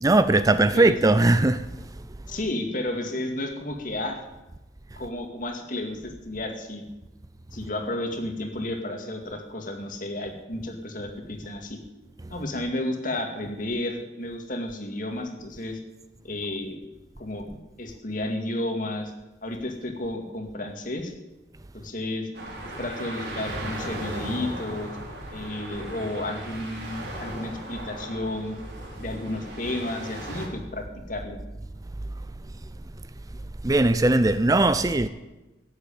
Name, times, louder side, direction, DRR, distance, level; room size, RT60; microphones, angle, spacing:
voice 1, 0.0-1.7 33.6-35.1, right 2 dB, 20° right, 0.5 m, -19 dB
voice 2, 2.3-4.2 5.0-6.8 7.5-11.8 12.3-15.8 16.2-16.8 17.2-19.1 19.4-21.1 21.7-22.3 22.8-24.9 25.3-28.6 29.0-31.4, left 1 dB, 50° left, 2.2 m, -32 dB
sound 1, 22.3-30.5, right 1 dB, 70° right, 3.8 m, -37 dB
16.0 x 8.1 x 8.7 m
head